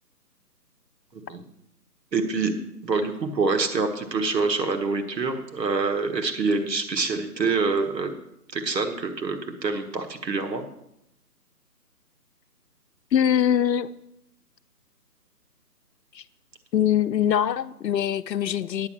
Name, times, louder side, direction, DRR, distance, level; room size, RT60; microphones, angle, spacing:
voice 1, 1.1-1.4 2.1-2.5 2.8-8.1 8.5-10.6, right 4 dB, 90° right, 6 dB, 1.5 m, -26 dB
voice 2, 13.1-13.9 16.1-16.2 16.7-18.9, left 9 dB, 90° left, 13 dB, 0.7 m, -23 dB
9.6 x 5.4 x 7.4 m, 0.80 s
hypercardioid pair, 175°, 49 cm